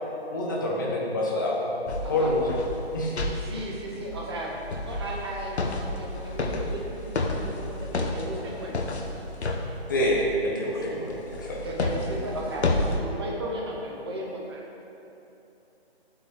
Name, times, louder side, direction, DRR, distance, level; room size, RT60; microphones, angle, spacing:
voice 1, 0.3-1.7 2.1-2.4 2.9-3.2 9.9-11.1 11.4-11.6, left 1 dB, 20° left, -3 dB, 0.8 m, -26 dB
sound 1, 1.9-10.5 11.1-13.0, left 2 dB, 85° left, 1.1 m, -31 dB
voice 2, 2.0-2.3 3.3-5.6 5.9-8.8 10.7-11.0 11.6-14.6, right 1 dB, 25° right, -2 dB, 1.0 m, -35 dB
12.0 x 7.9 x 3.2 m, 3.0 s
hypercardioid pair, 170°, 32 cm